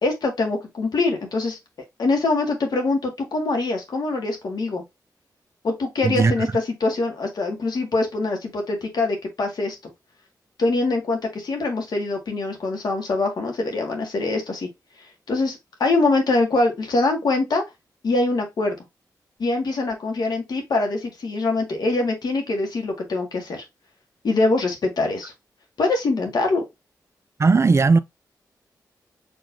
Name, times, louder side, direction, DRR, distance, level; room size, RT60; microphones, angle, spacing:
voice 1, 0.0-1.6 2.0-4.8 5.6-9.8 10.6-14.7 15.3-17.6 18.0-18.7 19.4-23.6 24.2-25.3 25.8-26.6, left 3 dB, 70° left, 1.9 m, -23 dB
voice 2, 27.4-28.0, right 4 dB, 40° right, 0.5 m, -16 dB
4.9 x 3.7 x 2.7 m
cardioid pair, 65°, 7 cm